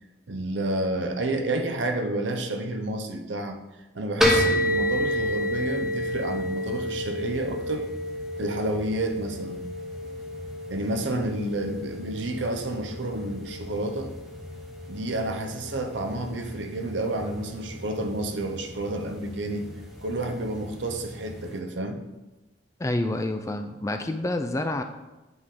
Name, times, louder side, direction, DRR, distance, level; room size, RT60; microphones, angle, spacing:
voice 1, 0.3-3.6 3.9-7.9 8.4-9.6 10.7-14.1 14.9-19.7 20.0-22.0, right 1 dB, 75° right, 6 dB, 0.7 m, -30 dB
sound 1, 4.2-21.6, equal, ahead, 0.9 m, -31 dB
voice 2, 22.8-24.8, left 1 dB, 15° left, 7 dB, 0.3 m, -28 dB
7.9 x 4.9 x 3.7 m, 1.1 s
head